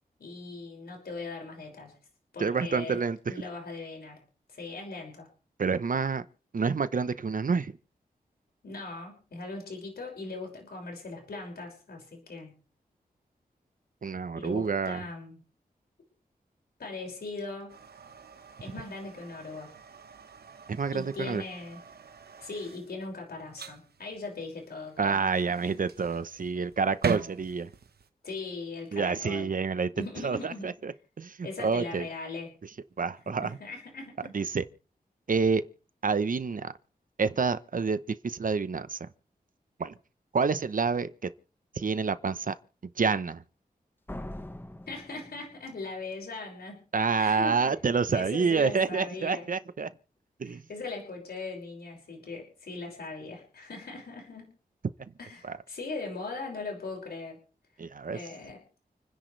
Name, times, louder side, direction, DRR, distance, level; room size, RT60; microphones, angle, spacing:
voice 1, 0.2-1.9 2.3-3.0 3.3-4.2 4.5-5.3 8.6-12.5 14.3-15.4 16.8-17.7 18.6-19.8 20.9-21.8 22.4-25.8 28.2-29.5 30.0-30.7 31.4-32.5 33.2-34.3 44.9-46.8 47.2-47.6 48.1-49.5 50.4-54.5 55.2-57.4 58.1-58.6, left 3 dB, 85° left, 6.1 m, -39 dB
voice 2, 2.4-3.3 5.6-6.2 6.5-7.7 14.0-15.0 20.7-21.4 25.0-27.7 28.9-29.9 30.2-32.0 33.0-33.6 34.3-34.6 35.3-35.6 36.0-36.7 37.2-39.1 39.8-39.9 40.3-41.1 41.8-42.6 43.0-43.4 46.9-49.9 50.4-50.6 55.4-55.6 57.8-58.2, right 5 dB, 60° right, 1.0 m, -28 dB
sound 1, 17.7-28.1, right 6 dB, 85° right, 1.2 m, -41 dB
Slam, 44.1-46.0, left 1 dB, 15° left, 1.1 m, -42 dB
29.5 x 10.5 x 3.4 m
wide cardioid pair, 80°, 16 cm